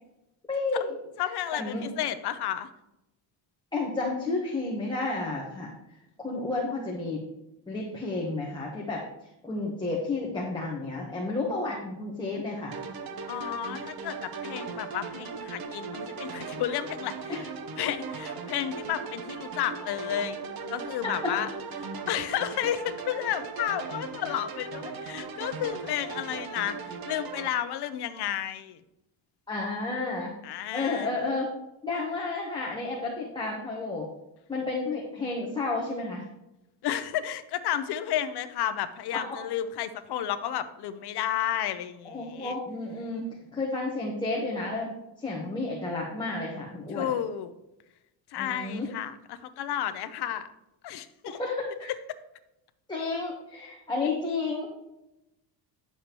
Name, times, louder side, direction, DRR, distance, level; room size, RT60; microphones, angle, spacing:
voice 1, 0.5-0.9 1.5-1.9 3.7-5.7 6.2-7.3 7.7-9.0 9.4-12.7 17.3-17.4 21.2-21.3 29.5-30.3 30.7-31.5 31.8-34.1 34.5-36.2 39.1-39.4 42.0-44.9 45.2-47.1 48.4-48.9 51.3-51.9 52.9-54.7, left 3 dB, 10° left, -4 dB, 1.0 m, -31 dB
voice 2, 1.2-2.7 13.3-17.3 17.8-20.4 20.7-21.5 21.8-28.8 30.4-31.1 36.8-42.6 46.9-47.5 48.3-50.5 50.8-51.4, left 10 dB, 60° left, 12 dB, 0.7 m, -32 dB
sound 1, 12.7-27.5, right 4 dB, 50° right, 0.9 m, -38 dB
9.5 x 7.1 x 2.9 m, 0.90 s
cardioid pair, 165°, 46 cm